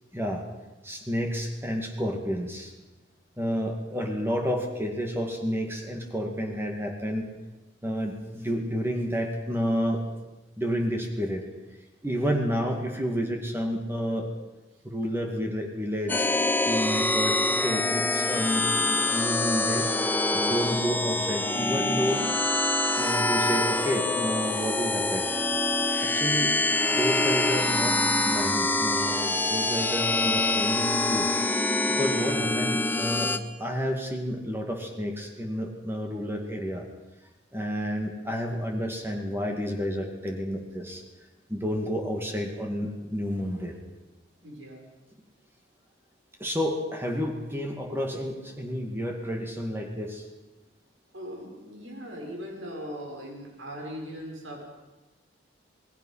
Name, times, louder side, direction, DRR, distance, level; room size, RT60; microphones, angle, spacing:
voice 1, 0.1-0.4 0.8-2.7 3.4-7.3 7.8-10.0 10.6-11.5 12.0-14.3 14.8-16.3 16.7-19.9 20.3-22.3 23.0-25.3 26.0-26.6 26.9-31.3 31.9-33.3 33.6-36.8 37.5-41.0 41.5-43.7 46.4-50.3, equal, 10° right, 2 dB, 2.3 m, -30 dB
sound 1, 16.1-33.4, left 2 dB, 10° left, 0.9 m, -25 dB
voice 2, 44.4-44.9 51.1-54.6, equal, 85° right, 0 dB, 6.9 m, -39 dB
27.0 x 20.0 x 5.8 m, 1.1 s
head